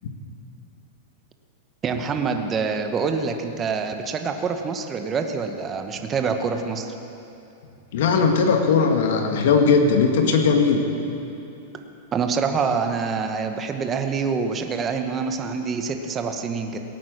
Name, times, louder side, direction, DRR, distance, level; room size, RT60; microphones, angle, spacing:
voice 1, 1.8-6.9 11.7-11.8 12.1-16.8, right 5 dB, 20° right, 6 dB, 0.9 m, -26 dB
voice 2, 7.9-10.9, left 5 dB, 70° left, 4 dB, 1.8 m, -19 dB
17.0 x 9.0 x 6.4 m, 2.7 s
supercardioid pair, 150°, 0 cm